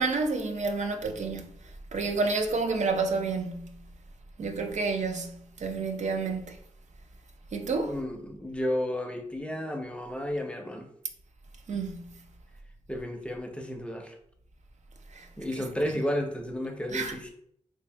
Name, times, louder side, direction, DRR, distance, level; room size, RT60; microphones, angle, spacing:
voice 1, 0.0-1.5 1.9-3.8 4.4-6.6 7.5-7.9 11.7-12.2 15.1-15.3 16.9-17.1, right 4 dB, 75° right, 0.4 m, -29 dB
voice 2, 7.9-10.9 12.9-14.2 15.4-17.3, left 1 dB, 10° left, 0.5 m, -32 dB
3.3 x 2.7 x 3.3 m
wide cardioid pair, 100°, 12 cm